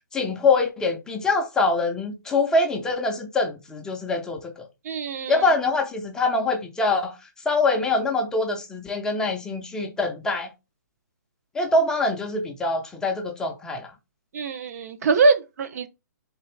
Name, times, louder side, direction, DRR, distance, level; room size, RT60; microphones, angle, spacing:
voice 1, 0.1-4.5 5.3-7.1 7.5-10.5 11.5-13.9, left 3 dB, 5° left, 0.4 m, -24 dB
voice 2, 4.8-5.4 14.3-15.9, right 4 dB, 55° right, 0.6 m, -23 dB
3.7 x 2.4 x 3.2 m
hypercardioid pair, 150°, 10 cm